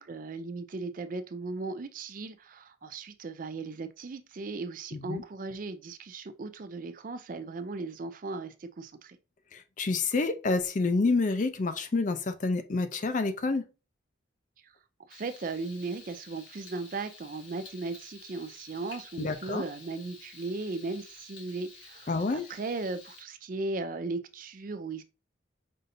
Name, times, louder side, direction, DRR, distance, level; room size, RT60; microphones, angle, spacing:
voice 1, 0.0-9.2 15.1-25.0, right 3 dB, 45° right, 0.4 m, -37 dB
voice 2, 4.9-5.2 9.5-13.6 19.2-19.6 22.1-22.5, left 3 dB, 40° left, 0.4 m, -28 dB
Frying (food), 15.1-23.2, left 3 dB, 90° left, 1.7 m, -51 dB
5.4 x 2.7 x 2.5 m
head